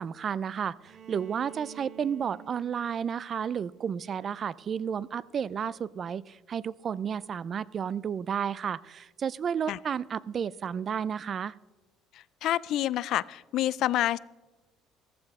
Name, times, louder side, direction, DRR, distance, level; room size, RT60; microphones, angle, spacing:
voice 1, 0.0-11.5, right 7 dB, 30° right, 21 dB, 0.3 m, -32 dB
Bowed string instrument, 0.8-4.7, right 9 dB, 55° right, 1.2 m, -51 dB
voice 2, 12.1-14.2, left 13 dB, 55° left, 21 dB, 0.3 m, -28 dB
14.5 x 14.5 x 3.6 m, 1.1 s
cardioid pair, 155°, 0 cm